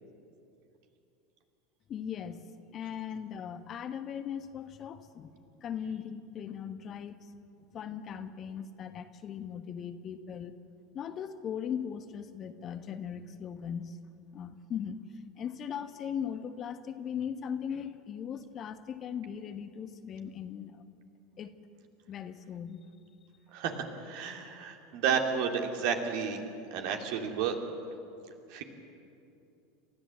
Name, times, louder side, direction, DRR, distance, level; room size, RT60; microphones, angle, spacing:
voice 1, 1.9-2.4 2.7-5.3 5.6-7.3 7.7-10.5 10.9-14.0 14.3-15.0 15.4-20.8 21.4-21.5 22.1-22.8, left 8 dB, 35° left, 10 dB, 1.2 m, -39 dB
voice 2, 23.5-26.4 26.7-27.6 28.5-28.6, right 7 dB, 55° right, 4 dB, 2.5 m, -31 dB
29.5 x 14.0 x 7.7 m, 2.7 s
figure-of-eight pair, 80°, 0 cm